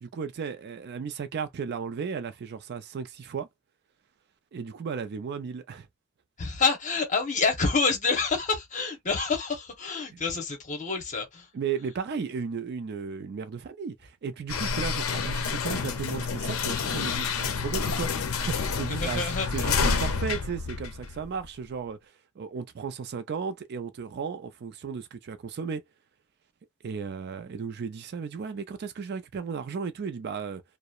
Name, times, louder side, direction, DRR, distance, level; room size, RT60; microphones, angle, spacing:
voice 1, 0.0-3.5 4.5-5.9 11.5-19.2 19.5-25.8 26.8-30.6, right 6 dB, 50° right, 0.4 m, -35 dB
voice 2, 6.4-11.5 18.9-19.5, left 4 dB, 35° left, 0.9 m, -27 dB
sound 1, 14.5-21.5, left 5 dB, 75° left, 0.5 m, -29 dB
2.8 x 2.0 x 2.3 m
head